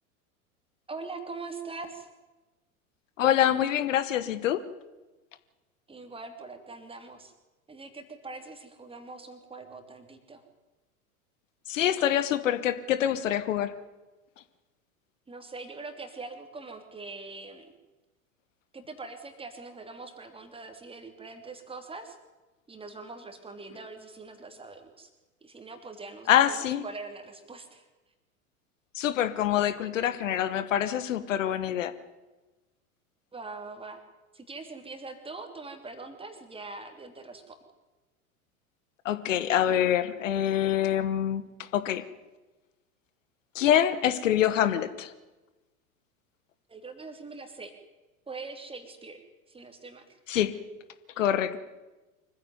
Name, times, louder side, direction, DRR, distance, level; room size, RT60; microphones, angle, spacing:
voice 1, 0.9-2.1 5.9-7.3 7.7-10.4 15.3-17.7 18.7-22.2 22.7-25.1 25.4-27.9 33.3-34.0 34.3-37.6 46.7-47.7 48.3-49.2 49.5-50.2, right 3 dB, 10° right, 6 dB, 3.1 m, -43 dB
voice 2, 3.2-4.6 11.7-13.8 26.3-26.9 28.9-31.9 39.0-42.0 43.5-45.1 50.3-50.6 51.2-51.6, left 11 dB, 60° left, 13 dB, 1.3 m, -25 dB
25.0 x 15.0 x 9.5 m, 1.1 s
figure-of-eight pair, 85°, 44 cm